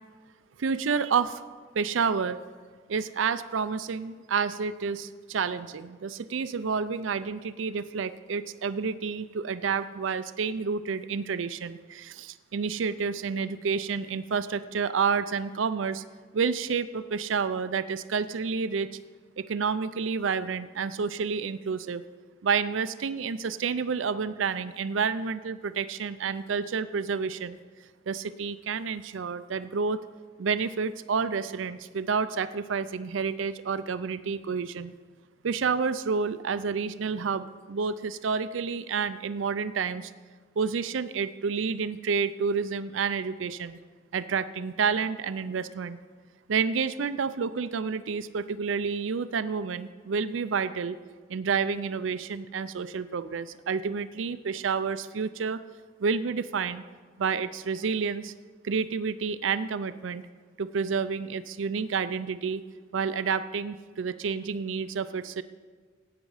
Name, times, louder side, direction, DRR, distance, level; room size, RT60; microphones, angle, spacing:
voice 1, 0.6-1.4 1.7-2.4 2.9-16.0 16.3-18.9 19.4-22.0 22.4-27.6 28.1-30.0 30.4-34.9 35.4-40.1 40.6-43.8 44.1-46.0 46.5-51.0 51.3-55.6 56.0-56.8 57.2-58.3 58.6-60.3 60.6-62.6 62.9-65.4, right 5 dB, 85° right, 13 dB, 0.5 m, -29 dB
16.0 x 9.1 x 4.8 m, 1.5 s
head